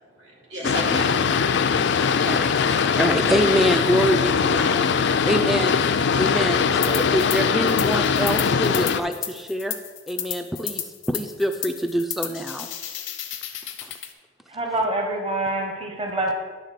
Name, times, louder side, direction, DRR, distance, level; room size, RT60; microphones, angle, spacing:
voice 1, 0.0-2.5 3.3-3.4, right 1 dB, 80° right, -2 dB, 2.3 m, -36 dB
Boat Water vehicle, 0.6-9.0, left 6 dB, 65° left, 0.4 m, -21 dB
voice 2, 0.6-1.0 2.2-9.8 10.1-12.7 13.8-13.9, equal, ahead, 6 dB, 0.3 m, -26 dB
sound 1, 6.8-7.4 7.7-14.1, left 11 dB, 90° left, 0.9 m, -33 dB
voice 3, 14.5-16.3, right 2 dB, 30° right, 2 dB, 0.8 m, -26 dB
10.5 x 4.0 x 6.6 m, 1.5 s
head